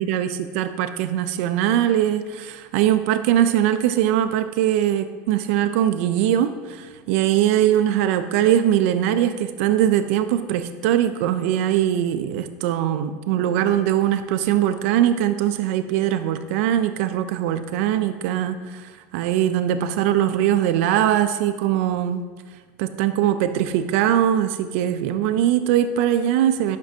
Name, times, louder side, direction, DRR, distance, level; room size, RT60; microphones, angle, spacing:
voice 1, 0.0-22.3 22.8-26.8, right 11 dB, 75° right, 9 dB, 0.4 m, -21 dB
11.0 x 5.3 x 2.7 m, 1.5 s
cardioid pair, 155°, 7 cm